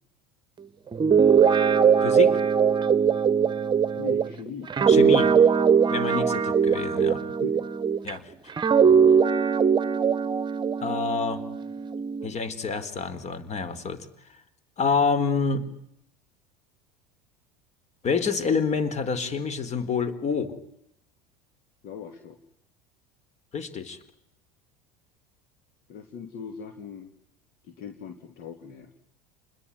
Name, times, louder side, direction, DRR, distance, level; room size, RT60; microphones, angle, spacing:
Guitar, 0.9-8.1 8.6-12.3, right 7 dB, 25° right, 1.3 m, -21 dB
voice 1, 2.0-2.4 4.9-5.3 5.9-7.3 8.0-8.3 10.8-11.4 12.2-14.1 14.8-15.6 18.0-20.5 23.5-24.0, left 5 dB, 35° left, 14 dB, 4.2 m, -27 dB
voice 2, 3.9-4.7 6.1-6.3 7.4-7.6 21.8-22.4 25.9-27.1 27.6-28.9, left 7 dB, 50° left, 7 dB, 2.9 m, -40 dB
29.5 x 21.0 x 9.6 m, 0.76 s
figure-of-eight pair, 75°, 20 cm